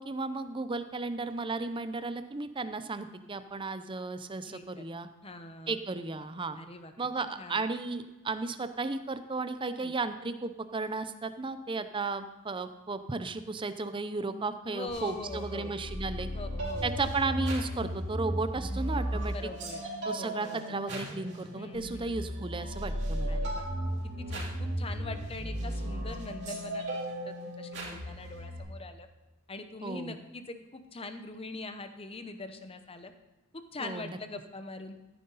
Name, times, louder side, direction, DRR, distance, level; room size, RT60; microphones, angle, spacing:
voice 1, 0.0-5.1 5.7-6.6 7.0-16.3 16.8-19.3 20.0-23.4 29.8-30.1 33.8-34.2, right 3 dB, 20° right, 11 dB, 0.6 m, -34 dB
voice 2, 4.4-4.9 5.2-5.8 6.5-6.9 7.2-7.7 9.7-9.9 14.7-15.7 16.3-16.9 19.2-19.9 20.2-20.6 21.5-22.2 23.3-23.6 24.2-26.8 27.2-29.1 29.5-33.1 33.5-35.0, left 2 dB, 25° left, 8 dB, 0.8 m, -43 dB
sound 1, 14.9-28.6, right 1 dB, 50° right, 3.4 m, -35 dB
14.0 x 9.4 x 4.0 m, 1.1 s
head